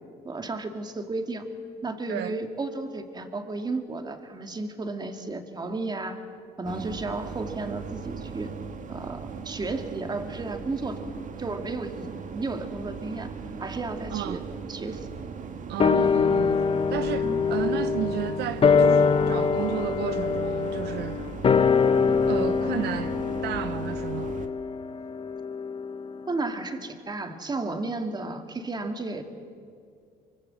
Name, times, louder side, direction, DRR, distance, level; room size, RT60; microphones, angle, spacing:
voice 1, 0.2-1.5 1.8-6.2 6.6-8.5 8.9-11.1 11.4-13.3 13.6-14.4 14.7-15.1 17.2-17.4 26.3-29.2, right 3 dB, 25° right, 6 dB, 2.3 m, -33 dB
sound 1, 6.6-24.5, right 6 dB, 50° right, 1.7 m, -38 dB
voice 2, 14.1-14.4 15.7-16.6 16.9-21.3 22.3-23.1 23.4-24.4, right 11 dB, 75° right, 12 dB, 0.9 m, -33 dB
sound 2, 15.8-26.4 26.7-26.8, left 5 dB, 35° left, 1.0 m, -24 dB
24.5 x 24.0 x 7.7 m, 2.3 s
cardioid pair, 110°, 17 cm